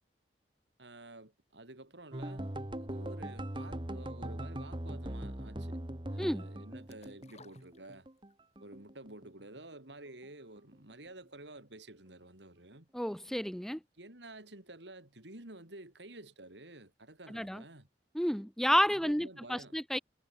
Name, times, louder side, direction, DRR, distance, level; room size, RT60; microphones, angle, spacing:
voice 1, 0.8-2.5 2.8-5.8 6.1-8.1 8.6-12.9 14.0-17.9 18.9-19.8, right 2 dB, 75° right, 4.3 m, -51 dB
sound 1, 2.1-8.3 8.6-9.6 9.9-10.2 10.6-10.8, right 1 dB, 30° right, 1.7 m, -41 dB
sound 2, 6.9-8.4 8.8-8.9, left 4 dB, 40° left, 6.5 m, -59 dB
voice 2, 12.9-13.8 17.3-17.6 18.1-20.0, equal, ahead, 0.8 m, -31 dB
head